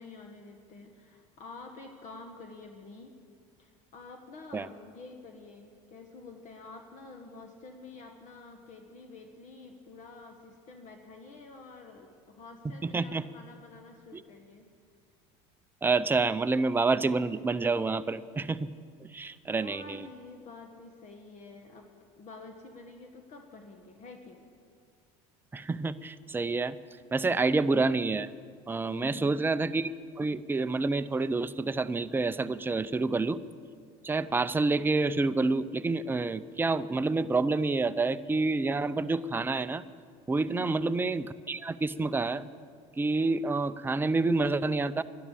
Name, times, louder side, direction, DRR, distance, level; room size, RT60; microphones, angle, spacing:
voice 1, 0.0-3.1 3.6-14.7 19.5-21.9 22.2-24.5 28.8-29.5 40.4-40.8, left 3 dB, 50° left, 4 dB, 1.4 m, -48 dB
voice 2, 12.8-13.2 14.1-14.2 15.8-18.7 19.1-20.0 25.5-26.8 27.1-28.3 28.7-29.9 30.2-33.4 34.0-39.8 40.3-42.5 43.0-45.0, right 3 dB, 15° right, 12 dB, 0.5 m, -28 dB
12.0 x 11.5 x 8.4 m, 2.1 s
supercardioid pair, 95°, 16 cm